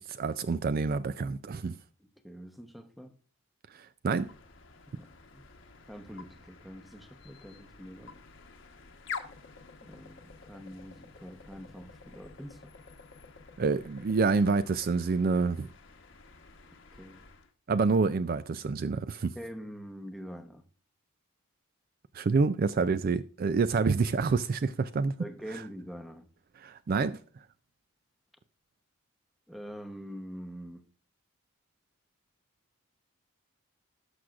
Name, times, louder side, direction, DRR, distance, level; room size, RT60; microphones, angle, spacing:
voice 1, 0.0-1.8 3.7-4.3 13.6-15.7 17.7-19.3 22.1-25.1 26.6-27.2, right 4 dB, 45° right, 0.3 m, -27 dB
voice 2, 2.0-3.2 4.9-5.5 5.9-8.2 9.8-12.7 16.9-17.3 19.3-20.7 25.2-26.3 29.5-30.9, equal, ahead, 0.8 m, -45 dB
sound 1, 4.1-17.5, left 5 dB, 60° left, 1.1 m, -49 dB
18.0 x 6.3 x 2.4 m
head